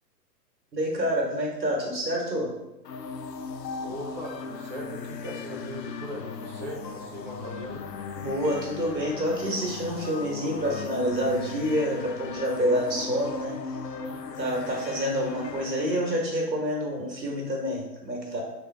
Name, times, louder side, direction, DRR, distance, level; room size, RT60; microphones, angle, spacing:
voice 1, 0.7-2.5 8.1-13.8 14.4-18.4, equal, 85° right, -1 dB, 1.4 m, -28 dB
sound 1, 2.8-16.4, left 5 dB, 80° left, 0.6 m, -38 dB
voice 2, 3.8-7.9, equal, 30° right, 0 dB, 0.4 m, -39 dB
3.8 x 3.4 x 3.3 m, 0.96 s
figure-of-eight pair, 115°, 50 cm